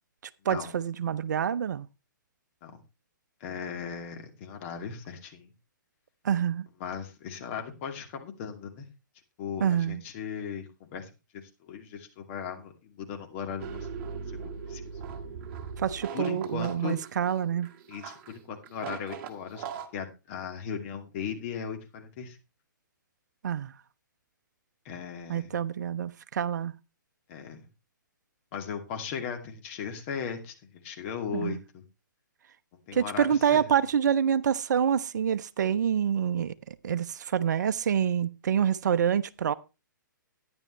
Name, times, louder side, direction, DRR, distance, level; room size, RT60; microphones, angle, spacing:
voice 1, 0.5-1.9 6.2-6.7 9.6-10.0 15.8-17.7 23.4-23.7 25.3-26.7 31.3-31.6 32.9-39.5, right 8 dB, 60° right, 0.7 m, -27 dB
voice 2, 3.4-5.5 6.8-8.9 9.4-13.9 14.3-14.8 16.1-17.0 17.9-19.7 19.9-22.4 24.8-25.5 27.3-27.6 28.5-31.8 32.9-33.6, left 7 dB, 40° left, 2.5 m, -37 dB
sound 1, 13.6-19.9, right 6 dB, 40° right, 1.9 m, -40 dB
13.0 x 10.5 x 3.2 m
figure-of-eight pair, 130°, 11 cm